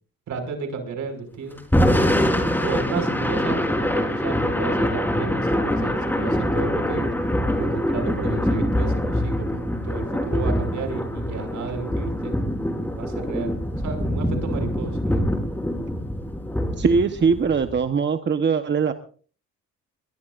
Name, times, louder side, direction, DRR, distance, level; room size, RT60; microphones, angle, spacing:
voice 1, 0.3-1.6 2.6-7.1 7.6-12.3 13.0-13.5 13.8-15.3, right 5 dB, 70° right, 5 dB, 6.1 m, -33 dB
Thunder / Rain, 1.6-17.8, equal, 5° left, 4.1 m, -24 dB
voice 2, 16.8-18.9, right 5 dB, 35° right, 8 dB, 1.1 m, -21 dB
22.5 x 22.5 x 2.6 m, 0.42 s
cardioid pair, 90°, 30 cm